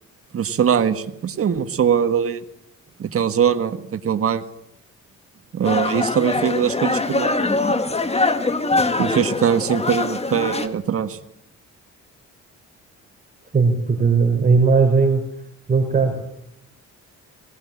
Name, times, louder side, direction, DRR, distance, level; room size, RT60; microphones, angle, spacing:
voice 1, 0.3-2.4 3.0-4.4 5.5-7.6 9.0-11.2, right 8 dB, 50° right, 8 dB, 1.6 m, -21 dB
sound 1, 5.6-10.7, left 3 dB, 20° left, 1.9 m, -23 dB
voice 2, 13.5-15.2 15.7-16.2, right 4 dB, 30° right, 2 dB, 4.7 m, -17 dB
20.0 x 18.0 x 8.7 m, 0.77 s
cardioid pair, 90°, 30 cm